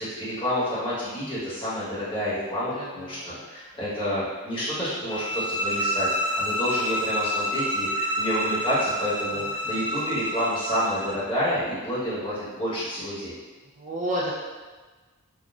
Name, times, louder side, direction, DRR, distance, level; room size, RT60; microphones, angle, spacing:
voice 1, 0.0-13.3, equal, 25° left, -11 dB, 1.1 m, -29 dB
voice 2, 2.7-3.5 9.3-9.8 13.8-14.3, right 1 dB, 35° right, -4 dB, 0.3 m, -33 dB
sound 1, 5.1-11.2, equal, 50° right, 0.9 m, -28 dB
3.7 x 2.0 x 2.3 m, 1.3 s
head